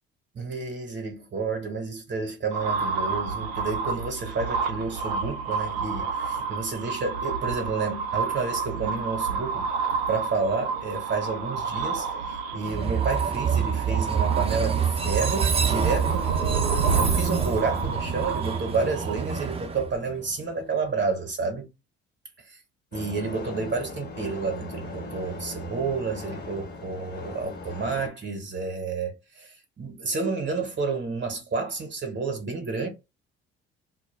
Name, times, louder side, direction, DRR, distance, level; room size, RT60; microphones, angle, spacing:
voice 1, 0.3-9.7 10.1-21.7 22.4-22.6 22.9-32.9, right 4 dB, 40° right, 1.0 m, -30 dB
sound 1, 2.5-19.6, right 5 dB, 85° right, 0.5 m, -29 dB
Train, 12.7-20.6, right 6 dB, 20° right, 0.6 m, -27 dB
sound 2, 22.9-28.1, left 2 dB, 35° left, 1.2 m, -39 dB
2.2 x 2.1 x 3.1 m
hypercardioid pair, 55°, 30 cm